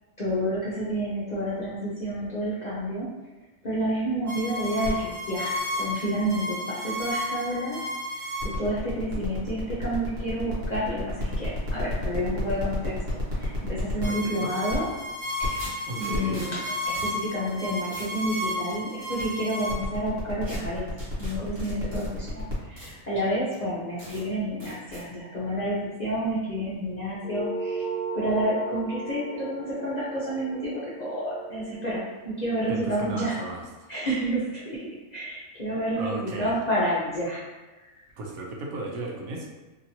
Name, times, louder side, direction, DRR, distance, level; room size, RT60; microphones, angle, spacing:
voice 1, 0.2-3.1 3.6-7.8 8.1-12.9 13.4-14.9 15.4-15.7 16.0-16.6 16.9-20.9 21.2-27.9 28.1-33.4 33.9-34.8 35.1-37.4 37.8-37.9, equal, 45° left, -8 dB, 0.5 m, -29 dB
sound 1, 4.3-22.5, left 1 dB, 65° right, 1.3 m, -32 dB
voice 2, 14.1-14.5 15.8-16.5 32.7-33.9 36.0-36.5 38.2-39.5, right 2 dB, 85° right, -1 dB, 1.1 m, -35 dB
sound 2, 14.9-15.0 15.5-16.5 16.9-17.2 17.5-17.6 17.9-18.2 18.7-19.3 20.4-20.6 21.0-22.1 22.8-22.9 23.5-23.6 24.0-24.2 24.6-25.0, equal, 35° right, 1.4 m, -42 dB
sound 3, 27.2-32.0, right 3 dB, 70° left, 0.9 m, -35 dB
2.9 x 2.8 x 2.7 m, 1.2 s
omnidirectional pair, 1.4 m